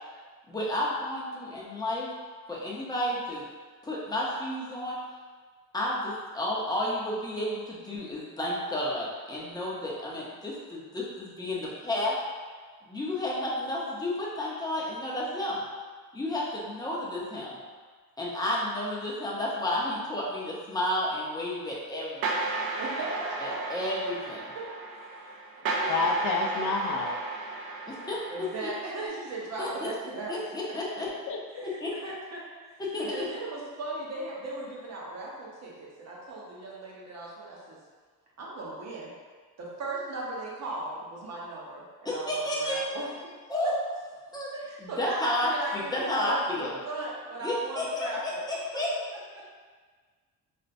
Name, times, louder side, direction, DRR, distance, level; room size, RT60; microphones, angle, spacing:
voice 1, 0.5-2.1 2.5-3.4 3.8-5.0 5.7-12.1 12.9-15.6 16.1-17.6 18.2-22.5 23.4-24.5 27.9-28.2 28.6-28.7 29.6-29.9 30.3-31.1 31.8-32.1 32.8-33.3 42.0-42.8 43.5-43.7 44.3-44.5 44.8-46.8 47.4-48.9, left 1 dB, 10° left, -6 dB, 0.6 m, -31 dB
sound 1, 22.2-29.1, right 3 dB, 75° right, 0.6 m, -34 dB
voice 2, 22.8-23.7 24.5-24.7 25.0-25.1 25.8-26.2 28.3-30.5 31.5-32.8 33.1-37.8 38.4-39.1 39.6-43.3 43.6-43.7 44.5-48.4 49.3-49.5, right 2 dB, 45° right, -4 dB, 0.9 m, -37 dB
voice 3, 25.6-27.2 31.3-31.7, left 3 dB, 55° left, 2 dB, 0.5 m, -29 dB
4.1 x 2.1 x 2.6 m, 1.5 s
cardioid pair, 135°, 36 cm